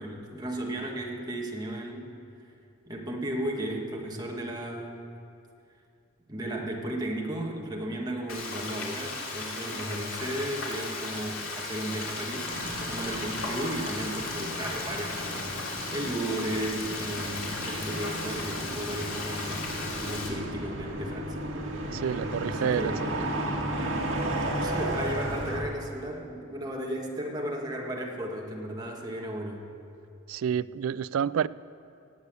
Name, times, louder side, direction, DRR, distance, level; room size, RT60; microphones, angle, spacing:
voice 1, 0.0-2.1 2.9-5.0 6.3-21.4 21.8-21.9 22.4-23.1 24.6-29.6, right 1 dB, 20° right, -1 dB, 1.8 m, -35 dB
Frying (food), 8.3-20.3, left 3 dB, 90° left, 2.9 m, -36 dB
sound 1, 12.5-25.6, right 1 dB, 75° right, 1.9 m, -34 dB
voice 2, 21.9-22.9 30.3-31.5, right 8 dB, 90° right, 20 dB, 0.3 m, -28 dB
18.0 x 8.4 x 8.3 m, 2.5 s
head